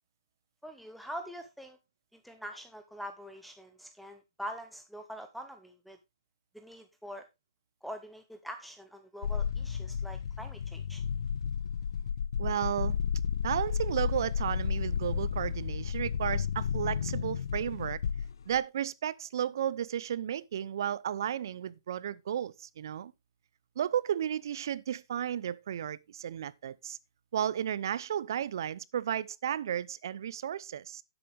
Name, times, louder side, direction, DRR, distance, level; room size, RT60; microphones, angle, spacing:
voice 1, 0.6-1.8 2.2-6.0 6.5-7.3 7.8-11.0, equal, ahead, 0.7 m, -44 dB
sound 1, 9.2-18.6, left 7 dB, 75° left, 0.5 m, -32 dB
voice 2, 12.4-13.0 13.4-18.0 18.5-23.1 23.8-27.0 27.3-31.0, right 9 dB, 60° right, 0.6 m, -33 dB
10.0 x 7.9 x 3.4 m
hypercardioid pair, 150°, 2 cm